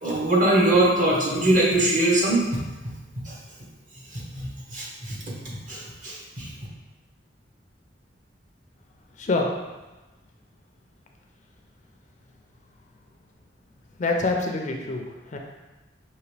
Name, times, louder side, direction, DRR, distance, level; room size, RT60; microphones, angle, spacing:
voice 1, 0.0-2.6 3.3-3.4 4.1-5.2 5.7-6.5, right 1 dB, 45° right, -4 dB, 1.0 m, -22 dB
voice 2, 9.2-9.5 14.0-15.4, left 2 dB, 40° left, 2 dB, 0.4 m, -26 dB
4.8 x 2.9 x 3.3 m, 1.1 s
head